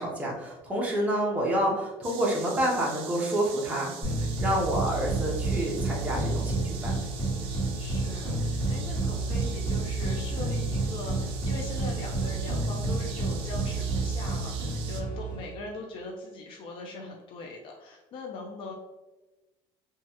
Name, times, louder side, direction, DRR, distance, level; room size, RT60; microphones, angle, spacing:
voice 1, 0.0-3.9 4.4-7.0, right 1 dB, 15° right, -3 dB, 0.7 m, -28 dB
sound 1, 2.0-15.0, right 7 dB, 60° right, 0.5 m, -44 dB
sound 2, 4.0-15.5, right 2 dB, 20° left, 1.4 m, -30 dB
voice 2, 5.6-6.0 7.5-18.7, left 3 dB, 55° left, 1 dB, 0.4 m, -41 dB
3.0 x 2.3 x 2.8 m, 1.1 s
cardioid pair, 150°, 11 cm